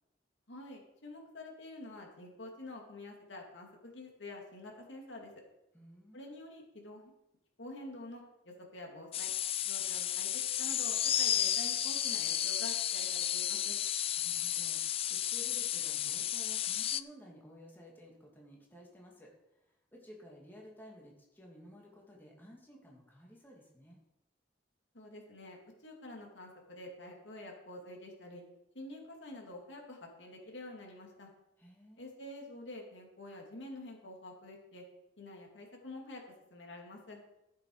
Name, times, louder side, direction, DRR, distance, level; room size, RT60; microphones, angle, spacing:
voice 1, 0.5-5.3 6.1-7.1 7.6-9.3 9.6-13.8 24.9-28.4 28.7-31.3 32.0-34.8 35.2-36.2 36.5-37.2, left 1 dB, 90° left, 0 dB, 2.6 m, -48 dB
voice 2, 5.7-6.3 14.2-24.0 31.6-32.1, equal, 10° left, -3 dB, 2.3 m, -55 dB
sound 1, 9.1-17.0, left 11 dB, 30° left, 0.3 m, -33 dB
13.5 x 7.6 x 4.9 m, 0.89 s
head